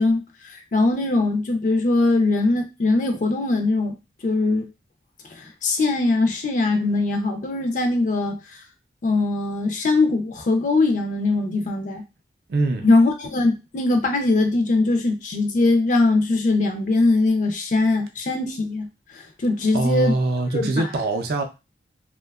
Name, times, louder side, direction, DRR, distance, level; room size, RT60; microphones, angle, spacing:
voice 1, 0.0-3.9 4.2-4.7 5.3-8.6 9.0-12.0 12.8-20.2 20.5-20.9, left 2 dB, 45° left, 0.4 m, -21 dB
voice 2, 12.5-12.9 19.7-21.4, right 2 dB, 60° right, 0.4 m, -23 dB
2.6 x 2.2 x 2.2 m
head